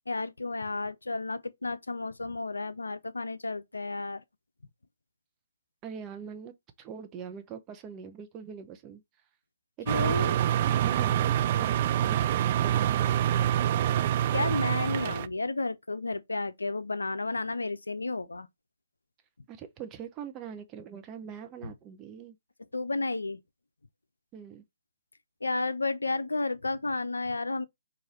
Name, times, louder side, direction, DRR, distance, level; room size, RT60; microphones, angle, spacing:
voice 1, 0.1-4.2 9.9-10.4 14.3-18.5 21.6-21.7 22.7-23.4 25.4-27.7, left 3 dB, 85° left, 0.5 m, -32 dB
voice 2, 5.8-6.5 6.8-9.0 9.8-11.7 12.0-13.8 19.5-22.4 24.3-24.6, right 8 dB, 20° right, 0.7 m, -43 dB
sound 1, 9.9-15.3, right 11 dB, 40° right, 0.3 m, -26 dB
4.7 x 2.6 x 4.2 m
figure-of-eight pair, 135°, 0 cm